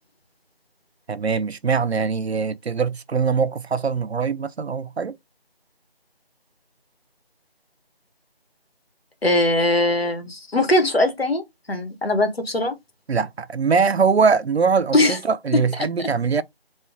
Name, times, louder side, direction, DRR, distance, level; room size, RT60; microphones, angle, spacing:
voice 1, 1.1-5.2 13.1-16.4, right 5 dB, 90° right, 0.6 m, -22 dB
voice 2, 9.2-11.4 11.7-12.8 14.9-15.2 16.0-16.1, left 2 dB, 70° left, 1.5 m, -20 dB
4.4 x 2.4 x 3.6 m
figure-of-eight pair, 170°, 31 cm